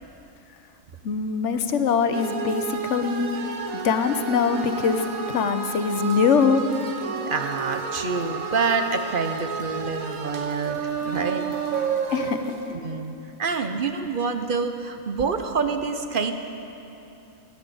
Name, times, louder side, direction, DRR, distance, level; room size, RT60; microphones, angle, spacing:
voice 1, 1.0-3.3 3.8-6.6 12.1-12.5, left 6 dB, 60° left, 9 dB, 1.1 m, -23 dB
sound 1, 2.1-12.7, right 6 dB, 75° right, 1.4 m, -31 dB
voice 2, 7.3-11.5 12.7-16.3, right 5 dB, 45° right, 7 dB, 0.8 m, -27 dB
17.0 x 10.5 x 7.0 m, 2.9 s
omnidirectional pair, 1.5 m